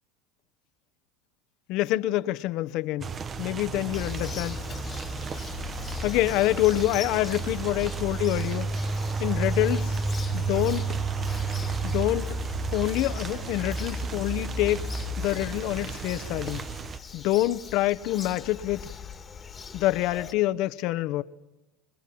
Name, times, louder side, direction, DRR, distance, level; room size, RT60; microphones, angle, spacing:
voice 1, 1.7-3.1 3.4-4.6 6.0-8.7 9.2-10.0 10.3-10.9 11.8-12.4 12.7-14.9 15.2-16.7 17.1-18.9 19.7-21.2, left 15 dB, 55° left, 1.1 m, -26 dB
sound 1, 3.0-17.0, right 5 dB, 25° right, 0.8 m, -32 dB
Bird vocalization bird call bird song, 3.9-20.3, left 4 dB, 20° left, 2.0 m, -38 dB
26.0 x 21.5 x 8.7 m
supercardioid pair, 140°, 0 cm